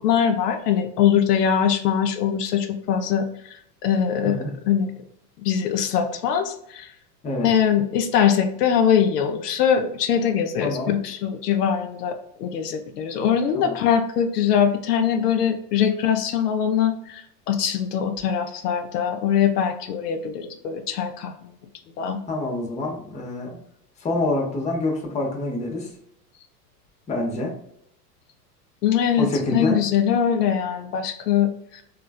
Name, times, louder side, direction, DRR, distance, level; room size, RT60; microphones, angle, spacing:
voice 1, 0.0-3.3 3.8-4.9 5.4-6.9 7.4-21.3 22.0-22.2 28.8-31.8, left 8 dB, 70° left, 6 dB, 0.6 m, -22 dB
voice 2, 10.6-10.9 13.5-13.8 22.3-23.6 24.0-25.9 27.1-27.5 29.2-29.8, left 2 dB, 15° left, 0 dB, 0.6 m, -26 dB
3.1 x 2.4 x 2.2 m, 0.71 s
hypercardioid pair, 95°, 49 cm